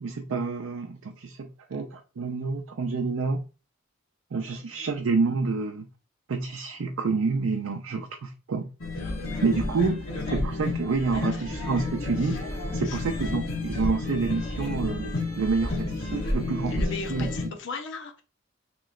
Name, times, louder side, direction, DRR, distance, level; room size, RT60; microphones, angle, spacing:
voice 1, 0.0-3.4 4.3-5.9 6.3-8.7 9.4-12.4 12.7-16.8 17.1-17.3, right 4 dB, 80° right, 4 dB, 0.5 m, -28 dB
voice 2, 4.6-4.9 11.1-11.6 12.2-12.5 12.8-13.0 14.6-14.7 16.7-18.2, left 3 dB, 60° left, 5 dB, 0.5 m, -39 dB
sound 1, 8.8-17.5, left 2 dB, 85° left, 1.3 m, -30 dB
3.1 x 3.0 x 3.7 m, 0.32 s
head